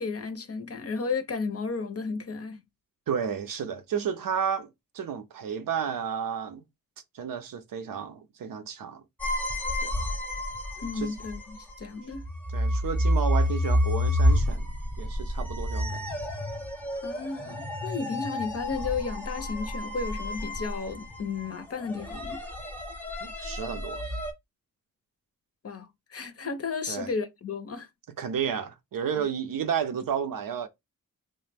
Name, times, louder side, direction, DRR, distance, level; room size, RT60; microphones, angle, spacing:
voice 1, 0.0-2.6 10.8-12.2 16.9-22.4 25.6-27.9 29.2-29.3, left 4 dB, 45° left, 0.6 m, -33 dB
voice 2, 3.1-6.6 7.1-9.0 9.8-10.0 10.9-11.1 12.5-14.7 15.0-16.1 23.2-24.1 26.9-27.1 28.2-30.7, right 7 dB, 90° right, 0.6 m, -32 dB
sound 1, 9.2-24.3, left 1 dB, 5° left, 0.7 m, -29 dB
3.0 x 2.1 x 3.3 m
wide cardioid pair, 95°, 33 cm